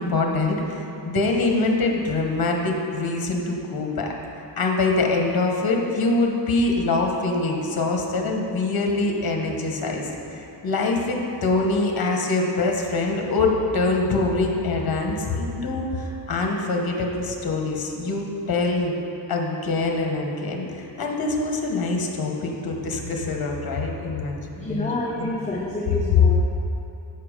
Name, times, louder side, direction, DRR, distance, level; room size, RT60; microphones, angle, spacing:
voice 1, 0.0-4.1 4.6-10.1 10.3-18.9 19.3-24.9 25.2-25.7, left 3 dB, 45° left, 1 dB, 1.1 m, -24 dB
voice 2, 24.6-26.3, left 1 dB, 15° left, -4 dB, 0.7 m, -28 dB
6.8 x 5.9 x 5.0 m, 2.9 s
cardioid pair, 110°, 49 cm